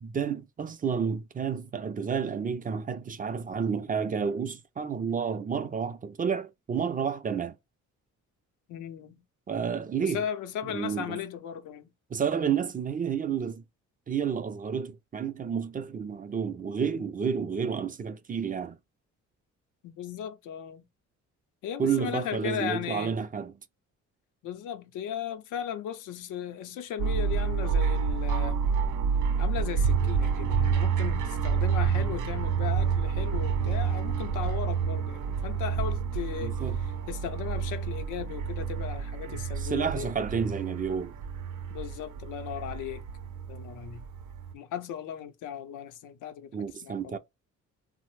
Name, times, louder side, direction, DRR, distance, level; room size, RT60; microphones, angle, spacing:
voice 1, 0.0-7.6 9.5-10.2 10.6-11.2 12.1-13.6 14.1-18.8 21.8-23.5 36.4-36.8 39.3-41.1 46.5-47.2, right 6 dB, 30° right, 0.4 m, -30 dB
voice 2, 8.7-9.2 10.0-11.9 19.8-20.9 21.6-23.1 24.4-28.6 29.4-36.6 37.1-40.1 41.7-43.0 43.5-44.0 44.5-46.5 46.8-47.2, left 9 dB, 85° left, 0.6 m, -36 dB
sound 1, 27.0-44.5, right 6 dB, 80° right, 0.6 m, -29 dB
3.1 x 2.0 x 3.1 m
cardioid pair, 90°, 30 cm